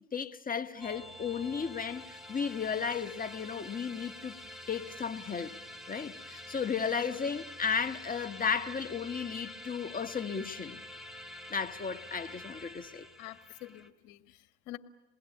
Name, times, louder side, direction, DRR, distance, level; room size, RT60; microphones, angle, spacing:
voice 1, 0.1-4.4 4.7-5.5 5.9-10.8 11.5-13.1, left 6 dB, 25° left, 1.4 m, -34 dB
sound 1, 0.8-13.9, left 1 dB, ahead, 2.5 m, -47 dB
voice 2, 13.2-14.8, left 16 dB, 70° left, 1.8 m, -47 dB
28.0 x 20.5 x 8.6 m
supercardioid pair, 90°, 33 cm